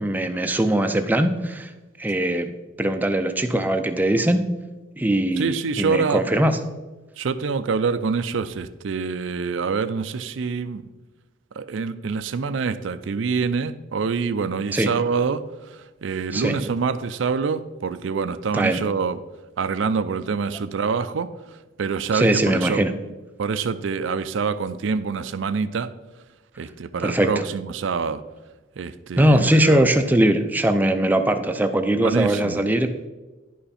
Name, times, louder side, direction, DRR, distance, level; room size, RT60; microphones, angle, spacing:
voice 1, 0.0-1.7 2.0-4.4 5.0-6.6 14.7-14.9 16.3-16.5 18.5-18.8 22.1-22.9 27.0-27.3 29.2-32.9, right 1 dB, 10° right, 7 dB, 0.4 m, -21 dB
voice 2, 5.4-6.2 7.2-10.9 11.6-19.2 19.6-21.3 21.8-22.8 23.4-25.9 26.6-28.2 28.8-29.8 31.9-32.6, right 5 dB, 75° right, 12 dB, 0.4 m, -26 dB
10.5 x 5.6 x 4.2 m, 1.2 s
head